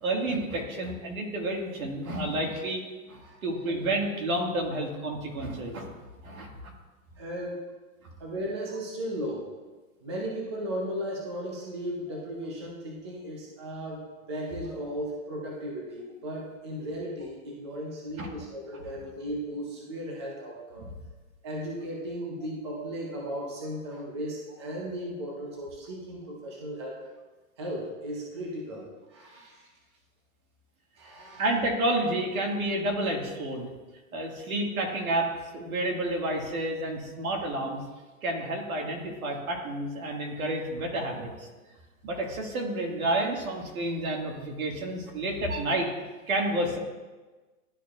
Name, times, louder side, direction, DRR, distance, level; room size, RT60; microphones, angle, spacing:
voice 1, 0.0-2.8 3.1-5.9 6.2-6.5 18.2-18.3 31.4-33.7 34.1-35.3 35.5-37.8 38.2-41.5 42.0-45.9 46.3-46.8, right 1 dB, 80° right, 0 dB, 2.0 m, -30 dB
voice 2, 7.2-7.6 8.2-9.5 10.0-20.9 21.4-27.0 27.6-29.7 31.0-31.4, equal, 20° right, -2 dB, 0.5 m, -36 dB
12.0 x 4.5 x 2.4 m, 1.3 s
hypercardioid pair, 175°, 42 cm